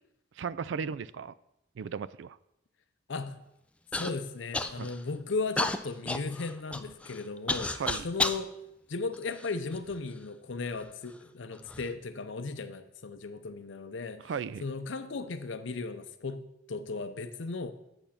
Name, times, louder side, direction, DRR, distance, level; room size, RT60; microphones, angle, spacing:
voice 1, 0.4-1.3 1.8-2.4 4.7-4.9 7.8-8.1 14.2-14.7, right 6 dB, 70° right, 0.3 m, -36 dB
voice 2, 3.1-3.4 3.9-7.8 8.0-8.5 8.9-14.3 14.6-17.7, left 3 dB, 75° left, 0.6 m, -36 dB
Human voice / Cough, 3.9-4.1 4.5-5.0 5.6-8.4 9.1-10.0 10.7-10.8 11.5-11.9, left 2 dB, 5° left, 0.3 m, -32 dB
8.8 x 6.9 x 5.8 m
head